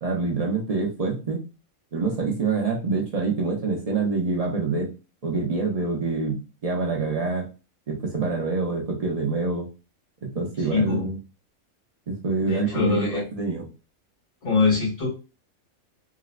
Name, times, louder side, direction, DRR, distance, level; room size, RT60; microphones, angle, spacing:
voice 1, 0.0-1.4 1.9-4.9 5.2-7.5 7.9-9.7 10.2-11.2 12.1-13.7, right 4 dB, 55° right, 0 dB, 0.4 m, -26 dB
voice 2, 10.7-11.1 12.4-13.2 14.4-15.1, left 4 dB, 80° left, -5 dB, 2.0 m, -23 dB
3.7 x 2.0 x 2.4 m, 0.31 s
omnidirectional pair, 1.5 m